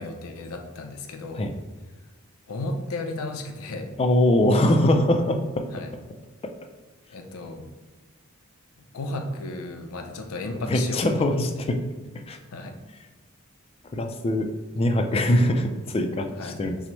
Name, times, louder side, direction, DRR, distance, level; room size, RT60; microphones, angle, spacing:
voice 1, 0.0-1.4 2.5-3.9 5.7-5.9 7.1-7.7 8.9-11.0 11.6-11.7 12.5-12.7 16.4-16.6, left 2 dB, 80° left, 4 dB, 0.5 m, -34 dB
voice 2, 4.0-5.6 6.4-6.5 10.7-11.8 12.3-12.4 13.9-14.5 14.7-16.8, left 1 dB, 25° left, 5 dB, 0.3 m, -22 dB
6.0 x 2.1 x 3.0 m, 1.3 s
head